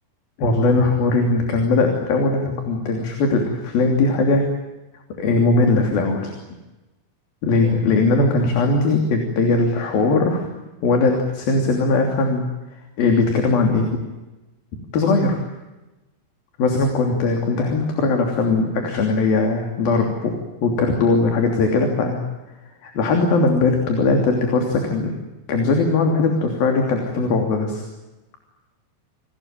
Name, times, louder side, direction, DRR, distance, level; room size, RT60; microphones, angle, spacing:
voice 1, 0.4-4.5 5.2-6.3 7.4-10.5 10.8-12.5 13.0-14.0 14.9-15.4 16.6-20.3 20.6-22.2 22.8-25.1 25.5-27.8, left 3 dB, 65° left, 3 dB, 4.9 m, -19 dB
29.0 x 21.0 x 9.1 m, 1.1 s
omnidirectional pair, 4.7 m